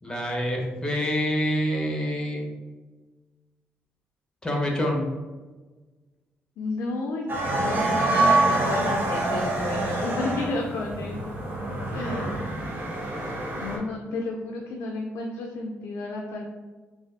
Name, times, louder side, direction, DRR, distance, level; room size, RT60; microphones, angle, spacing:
voice 1, 0.0-2.4 4.4-5.1, equal, 15° left, 0 dB, 0.9 m, -26 dB
voice 2, 6.6-7.3 7.6-11.4 11.9-12.4 13.4-16.5, left 3 dB, 75° left, 0 dB, 0.4 m, -32 dB
sound 1, 7.3-13.8, right 2 dB, 45° right, 0.8 m, -26 dB
3.3 x 2.3 x 2.5 m, 1.3 s
supercardioid pair, 55°, 5 cm